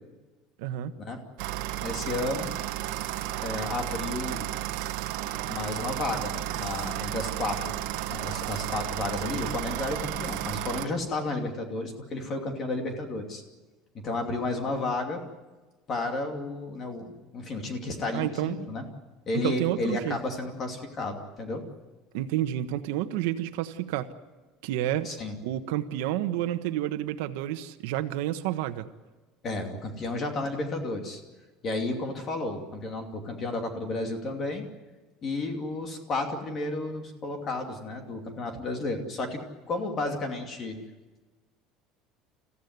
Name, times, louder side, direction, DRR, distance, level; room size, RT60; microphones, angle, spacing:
voice 1, 0.6-0.9 18.1-18.6 19.3-20.2 22.1-24.1 24.6-25.1 25.4-28.9, right 13 dB, 90° right, 9 dB, 1.4 m, -30 dB
sound 1, 1.4-10.9, right 14 dB, 70° right, 1.4 m, -33 dB
voice 2, 1.8-2.5 3.4-4.5 5.5-7.7 8.1-13.4 13.9-15.2 15.9-18.8 19.3-21.6 25.0-25.3 29.4-31.2 31.6-34.6 35.2-39.4 39.7-40.8, left 2 dB, 25° left, 4 dB, 2.7 m, -32 dB
28.5 x 15.5 x 9.6 m, 1.2 s
cardioid pair, 180°, 0 cm